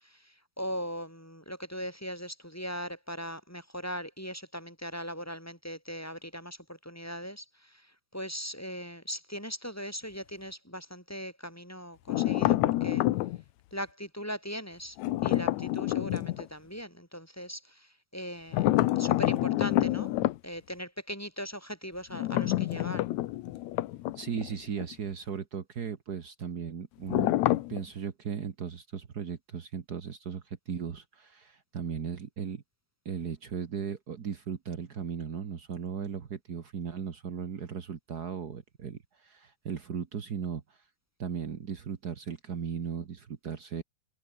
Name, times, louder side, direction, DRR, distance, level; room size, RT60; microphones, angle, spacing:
voice 1, 0.6-6.6 6.8-7.4 8.1-13.0 13.7-15.0 15.2-17.6 18.1-18.7 19.0-20.1 20.4-23.0, equal, 5° left, 4.0 m, -39 dB
sound 1, 12.1-13.4 15.0-16.4 18.5-20.4 22.1-24.5 24.8-24.9 27.1-27.8, left 16 dB, 75° left, 1.7 m, -27 dB
voice 2, 24.1-27.4 27.7-32.6 33.0-40.8 41.2-43.8, right 7 dB, 85° right, 0.8 m, -37 dB
omnidirectional pair, 4.2 m